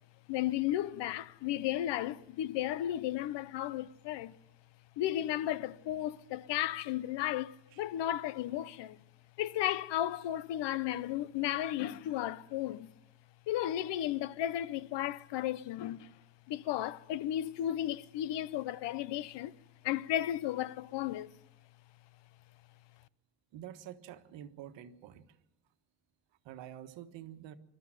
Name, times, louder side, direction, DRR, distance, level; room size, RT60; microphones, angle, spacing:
voice 1, 0.3-4.3 5.0-9.0 9.4-12.9 13.5-16.1 16.5-19.5 19.8-21.3, left 12 dB, 70° left, 0.9 m, -34 dB
voice 2, 23.5-25.3 26.4-27.6, right 11 dB, 85° right, 1.5 m, -48 dB
26.5 x 13.0 x 7.7 m
cardioid pair, 165°, 43 cm